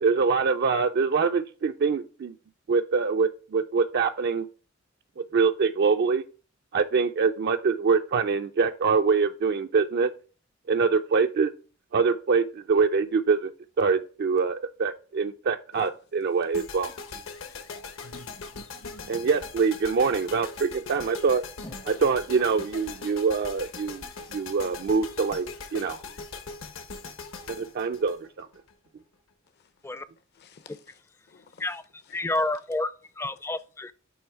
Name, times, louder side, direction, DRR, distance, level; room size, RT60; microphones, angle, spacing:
voice 1, 0.0-2.3 2.7-4.5 5.2-6.2 6.7-10.1 10.7-11.5 11.9-13.5 13.8-16.9 19.1-21.4 21.8-24.0 24.3-26.0 27.5-28.5, right 5 dB, 55° right, 0.4 m, -24 dB
sound 1, 16.5-28.7, left 4 dB, 70° left, 1.0 m, -41 dB
voice 2, 18.0-19.3 30.3-31.0 31.3-31.6 32.2-32.3, left 3 dB, 55° left, 0.6 m, -52 dB
voice 3, 32.1-32.9 33.2-33.9, left 2 dB, 10° left, 0.4 m, -29 dB
8.7 x 3.1 x 4.5 m
head